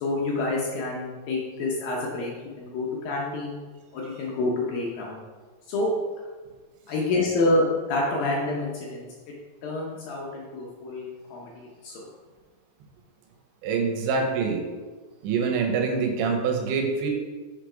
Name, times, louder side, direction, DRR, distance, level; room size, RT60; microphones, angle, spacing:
voice 1, 0.0-3.6 3.9-5.2 5.7-5.9 6.9-9.3 9.6-11.0 11.3-12.1, left 2 dB, 75° left, -3 dB, 2.2 m, -28 dB
voice 2, 13.6-14.6 15.2-17.1, right 5 dB, 90° right, 2 dB, 3.3 m, -25 dB
6.6 x 5.1 x 5.0 m, 1.4 s
omnidirectional pair, 5.0 m